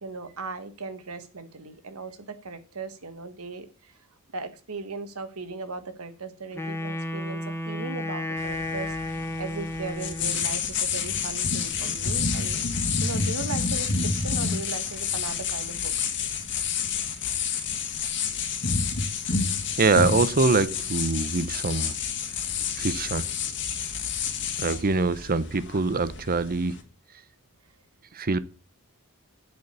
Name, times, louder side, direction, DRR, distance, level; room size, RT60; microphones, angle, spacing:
voice 1, 0.0-3.9 4.3-12.6 13.0-16.1 18.7-18.9 24.7-25.1, right 3 dB, 75° right, 1.5 m, -38 dB
Wind instrument woodwind instrument, 6.5-10.5, left 1 dB, 10° left, 0.9 m, -32 dB
sound 1, 8.4-26.8, left 5 dB, 55° left, 1.9 m, -29 dB
voice 2, 19.8-21.9 22.7-23.3 24.6-26.8 28.1-28.4, right 3 dB, 40° right, 0.7 m, -24 dB
8.1 x 7.4 x 8.3 m
head